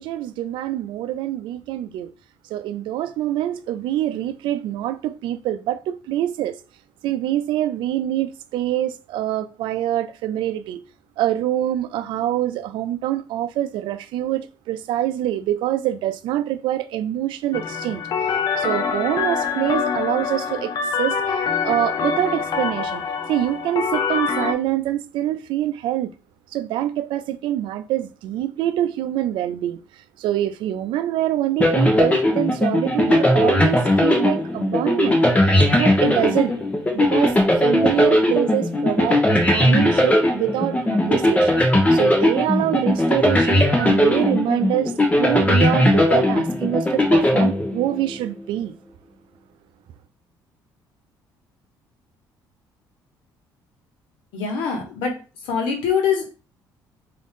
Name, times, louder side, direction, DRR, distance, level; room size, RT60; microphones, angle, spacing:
voice 1, 0.0-2.1 2.5-6.5 7.0-10.8 11.2-23.0 23.3-26.1 26.5-36.5 36.9-41.6 41.9-48.8, right 12 dB, 75° right, 0.5 m, -25 dB
sound 1, 17.5-24.5, left 6 dB, 50° left, 0.7 m, -25 dB
sound 2, 31.6-48.2, left 1 dB, 15° left, 1.0 m, -18 dB
voice 2, 54.3-55.1 55.4-56.3, left 6 dB, 90° left, 1.2 m, -23 dB
3.7 x 2.7 x 3.6 m
cardioid pair, 95°, 8 cm